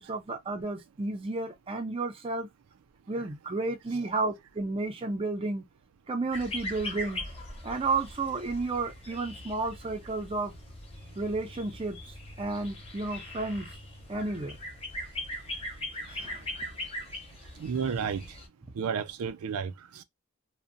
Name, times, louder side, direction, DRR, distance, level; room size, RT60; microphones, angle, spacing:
voice 1, 0.0-2.5 3.1-5.6 6.1-7.2 7.6-10.5 11.2-13.7 14.1-14.6 16.1-16.7, right 3 dB, 25° right, 0.5 m, -32 dB
sound 1, 6.3-18.5, left 1 dB, 25° left, 0.6 m, -41 dB
voice 2, 17.6-18.4 18.7-20.0, right 6 dB, 90° right, 0.4 m, -32 dB
2.5 x 2.2 x 2.6 m
head